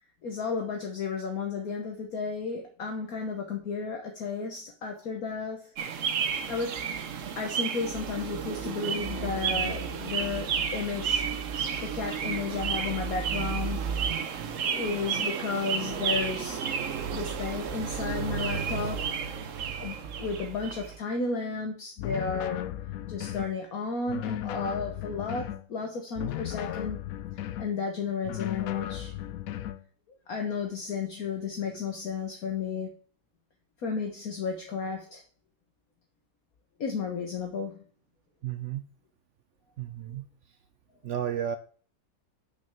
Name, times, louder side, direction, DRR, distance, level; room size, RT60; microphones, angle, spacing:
voice 1, 0.2-5.7 6.1-6.2 6.5-6.8 7.4-11.2 11.8-13.9 14.7-16.6 17.1-19.2 19.8-22.7 23.1-27.0 27.6-29.1 30.3-32.9 33.8-35.2 36.8-37.8, left 5 dB, 55° left, 1.4 m, -33 dB
sound 1, 5.8-21.0, right 7 dB, 55° right, 1.0 m, -32 dB
sound 2, 22.0-23.6 24.1-25.7 26.2-27.7 28.3-29.8, left 12 dB, 70° left, 0.8 m, -35 dB
voice 2, 38.4-38.8 39.8-40.2 41.0-41.6, right 10 dB, 85° right, 0.6 m, -32 dB
6.2 x 5.7 x 6.7 m
omnidirectional pair, 2.0 m